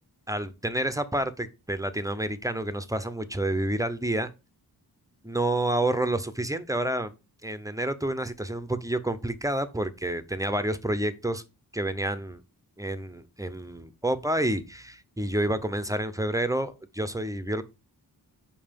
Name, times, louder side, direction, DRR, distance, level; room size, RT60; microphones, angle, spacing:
voice 1, 0.3-4.3 5.2-7.1 7.4-11.4 11.7-12.4 12.8-17.6, right 1 dB, 10° right, 0.6 m, -29 dB
5.5 x 5.2 x 5.1 m
wide cardioid pair, 120°, 39 cm